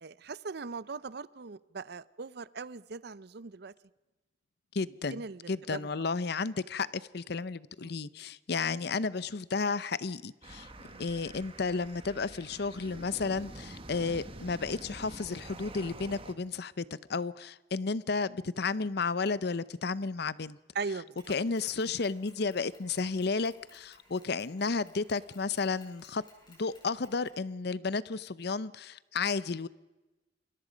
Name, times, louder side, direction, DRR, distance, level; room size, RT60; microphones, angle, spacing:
voice 1, 0.0-3.7 5.1-5.9 7.8-7.9 10.9-11.0 20.7-21.2, right 4 dB, 65° right, 0.6 m, -40 dB
voice 2, 4.7-16.8 17.1-20.6 21.3-26.2 26.5-29.7, left 4 dB, 65° left, 0.7 m, -32 dB
sound 1, 10.4-16.3, right 2 dB, 30° right, 1.7 m, -47 dB
Mechanisms, 21.2-27.5, left 2 dB, 25° left, 6.8 m, -61 dB
27.5 x 22.5 x 5.2 m
head